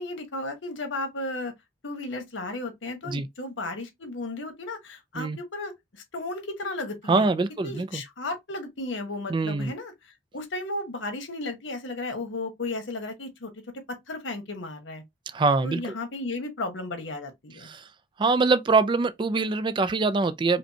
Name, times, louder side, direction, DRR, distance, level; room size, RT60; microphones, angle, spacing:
voice 1, 0.0-1.5 1.8-7.3 7.6-9.9 10.3-15.0 15.6-17.7, left 2 dB, 85° left, 1.2 m, -34 dB
voice 2, 7.1-8.0 9.3-9.7 15.3-15.8 17.6-17.8 18.2-20.6, right 3 dB, 25° right, 0.3 m, -24 dB
5.1 x 2.1 x 2.8 m
head